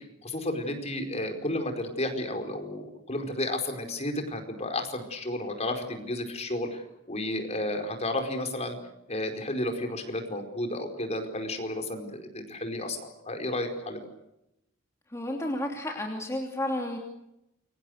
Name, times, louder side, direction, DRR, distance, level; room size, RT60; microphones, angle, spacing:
voice 1, 0.2-8.8 9.1-14.0, left 1 dB, 35° left, 5 dB, 4.9 m, -32 dB
voice 2, 15.1-17.0, left 1 dB, 15° left, 1 dB, 3.0 m, -31 dB
29.0 x 24.5 x 6.6 m, 0.85 s
head